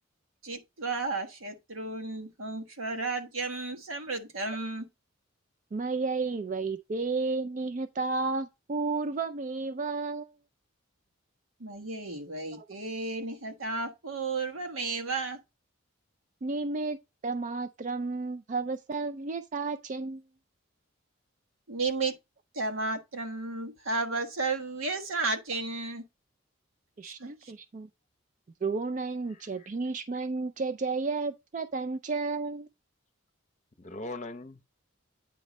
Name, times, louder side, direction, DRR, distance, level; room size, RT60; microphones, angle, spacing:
voice 1, 0.4-4.9 11.6-15.4 21.7-22.1 22.5-26.0 27.0-27.3, right 3 dB, 90° right, 1.3 m, -33 dB
voice 2, 5.7-10.3 12.5-12.7 16.4-17.0 17.2-20.2 27.0-27.9 28.6-32.7, right 3 dB, 40° right, 0.4 m, -32 dB
voice 3, 29.3-29.7 33.8-34.7, left 2 dB, 35° left, 0.7 m, -41 dB
8.9 x 3.1 x 5.2 m
head